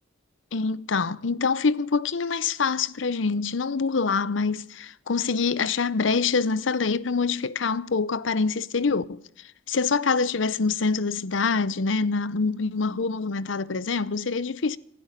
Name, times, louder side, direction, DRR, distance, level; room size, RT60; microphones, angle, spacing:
voice 1, 0.5-9.2 9.7-14.8, left 4 dB, 80° left, 0.7 m, -25 dB
19.5 x 12.5 x 5.2 m
head